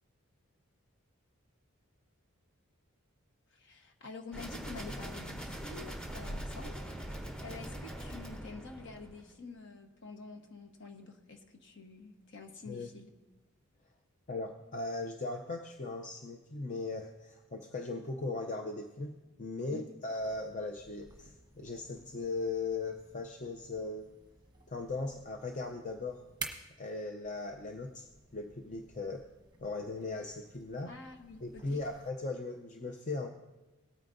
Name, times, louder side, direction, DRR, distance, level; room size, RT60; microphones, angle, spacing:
voice 1, 3.5-13.1 19.7-19.8 30.9-31.8, left 3 dB, 55° left, 4 dB, 1.2 m, -48 dB
sound 1, 4.3-9.3, right 1 dB, 5° left, 1.0 m, -42 dB
voice 2, 14.3-24.1 24.7-26.2 26.8-28.1 28.3-29.3 29.6-30.9 31.4-33.3, left 3 dB, 35° left, 4 dB, 0.5 m, -38 dB
sound 2, 20.2-32.1, right 4 dB, 20° right, 1.1 m, -52 dB
18.5 x 9.4 x 2.6 m, 1.1 s
head